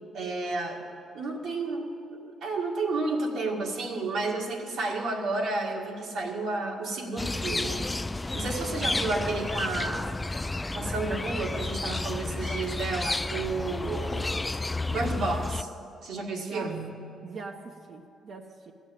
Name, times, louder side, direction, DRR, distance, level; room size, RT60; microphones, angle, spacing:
voice 1, 0.1-0.8 1.1-7.8 8.3-10.2 10.7-14.2 14.9-15.7 16.0-16.9, right 3 dB, 75° right, 0 dB, 2.0 m, -31 dB
sound 1, 7.2-15.6, left 2 dB, 20° left, 0.3 m, -31 dB
voice 2, 16.3-16.7 17.2-18.7, right 4 dB, 55° right, 1 dB, 0.9 m, -42 dB
14.5 x 7.2 x 9.2 m, 2.4 s
cardioid pair, 90°, 0 cm